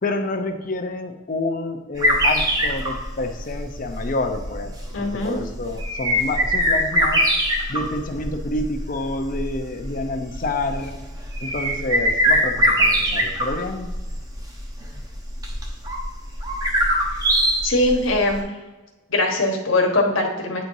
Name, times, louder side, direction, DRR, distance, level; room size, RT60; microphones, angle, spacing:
voice 1, 0.0-7.2 7.7-11.0 11.4-13.9, left 2 dB, 45° left, 6 dB, 0.6 m, -28 dB
sound 1, 2.0-18.3, equal, 20° right, 0.8 m, -23 dB
voice 2, 4.9-5.4 17.6-18.4 19.1-20.6, left 2 dB, 85° left, 2 dB, 1.2 m, -21 dB
9.3 x 4.4 x 2.7 m, 1.1 s
head